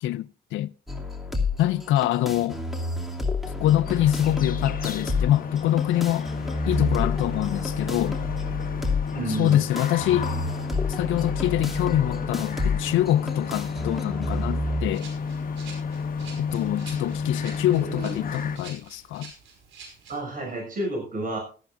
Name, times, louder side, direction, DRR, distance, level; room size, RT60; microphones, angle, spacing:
sound 1, 0.9-14.9, left 3 dB, ahead, 2.6 m, -30 dB
voice 1, 1.6-2.6 3.6-6.3 6.7-8.1 9.4-10.3 10.9-15.1 16.4-19.3, left 13 dB, 80° left, 0.5 m, -25 dB
sound 2, 3.8-18.6, left 5 dB, 45° left, 1.3 m, -31 dB
voice 2, 9.1-9.6 17.7-18.2 20.1-21.4, right 2 dB, 45° right, 5.9 m, -31 dB
Rattle (instrument), 14.9-20.2, right 4 dB, 90° right, 5.0 m, -47 dB
17.5 x 13.5 x 2.5 m
cardioid pair, 90°, 20 cm